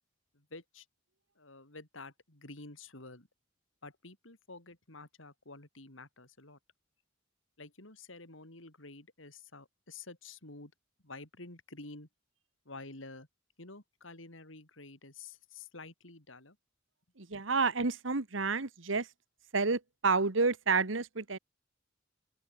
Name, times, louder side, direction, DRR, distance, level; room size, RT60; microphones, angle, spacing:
voice 1, 0.3-0.8 1.4-3.3 3.8-6.6 7.6-10.7 11.0-12.1 12.6-13.3 13.6-16.6, left 3 dB, 90° left, 5.1 m, -50 dB
voice 2, 17.2-19.1 19.5-21.4, right 4 dB, 80° right, 1.5 m, -30 dB
open air
head